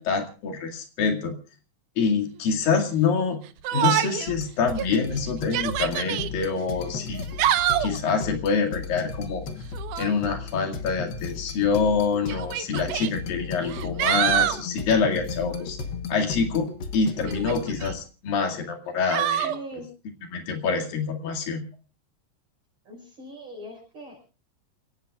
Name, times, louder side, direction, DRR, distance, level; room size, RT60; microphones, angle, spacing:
voice 1, 0.0-1.4 2.0-3.4 3.7-7.2 7.8-9.4 10.0-15.8 16.1-19.5 20.3-21.6, left 5 dB, 90° left, 3 dB, 4.1 m, -26 dB
Yell, 3.6-4.3 4.8-4.9 5.4-6.3 7.1-8.0 9.7-10.2 11.3-11.4 12.3-13.1 13.7-14.6 17.3-17.9 19.1-19.6, right 11 dB, 75° right, 2.2 m, -25 dB
sound 1, 4.3-18.0, left 5 dB, 70° left, 1.0 m, -35 dB
voice 2, 19.4-19.9 22.9-24.3, right 1 dB, 45° right, -1 dB, 6.9 m, -40 dB
28.5 x 17.0 x 2.4 m, 0.34 s
omnidirectional pair, 3.9 m